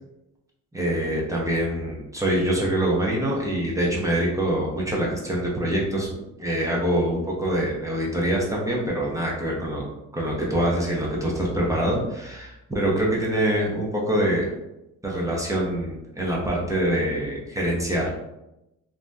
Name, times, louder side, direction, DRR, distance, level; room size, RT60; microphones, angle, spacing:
voice 1, 0.7-6.1 6.4-9.9 10.1-14.5 15.0-18.3, right 1 dB, 10° right, -4 dB, 0.7 m, -25 dB
2.7 x 2.1 x 3.4 m, 0.91 s
cardioid pair, 115°, 30 cm